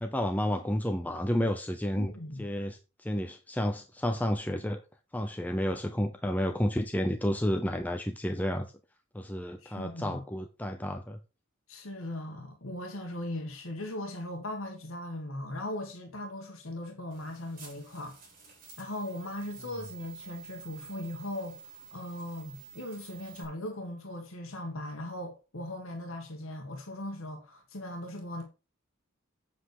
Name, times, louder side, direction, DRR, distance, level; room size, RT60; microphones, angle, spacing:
voice 1, 0.0-2.1 2.4-4.8 5.1-8.7 9.1-11.2, equal, 10° left, 0.7 m, -31 dB
voice 2, 2.0-2.4 9.6-10.2 11.7-18.2 18.8-28.4, left 1 dB, 80° left, 1.8 m, -39 dB
sound 1, 17.1-23.4, right 5 dB, 45° right, 5.9 m, -50 dB
8.3 x 7.8 x 4.8 m
head